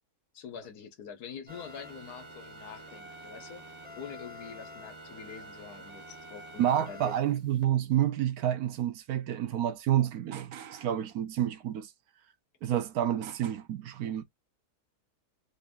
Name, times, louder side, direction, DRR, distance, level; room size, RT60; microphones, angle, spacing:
voice 1, 0.3-3.6 4.0-7.4, left 7 dB, 75° left, 1.5 m, -45 dB
sound 1, 1.5-7.6, equal, 30° right, 0.8 m, -47 dB
voice 2, 6.6-11.9 12.6-14.2, right 11 dB, 70° right, 1.1 m, -29 dB
3.9 x 2.6 x 3.5 m
omnidirectional pair, 1.7 m